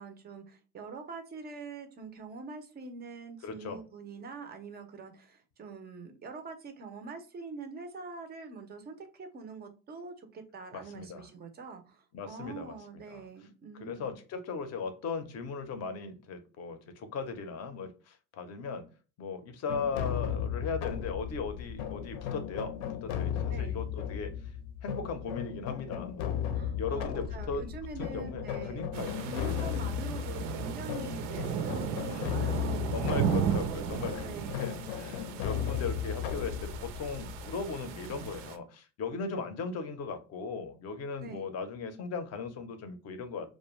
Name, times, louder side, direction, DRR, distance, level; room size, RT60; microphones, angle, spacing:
voice 1, 0.0-14.2 23.5-23.8 26.5-28.9 29.2-33.0 33.3-33.5 34.2-34.7 41.2-41.5, right 4 dB, 25° right, 0.4 m, -44 dB
voice 2, 3.4-3.8 10.7-11.3 12.1-12.8 13.1-13.3 13.8-18.9 19.2-24.5 24.8-26.4 26.7-27.7 28.0-29.8 32.1-32.5 32.9-34.3 34.6-43.5, left 4 dB, 35° left, 0.5 m, -38 dB
sound 1, 19.7-38.4, left 9 dB, 75° left, 0.6 m, -36 dB
sound 2, 28.9-38.6, right 8 dB, 90° right, 0.6 m, -35 dB
2.5 x 2.1 x 3.0 m
cardioid pair, 135°, 45 cm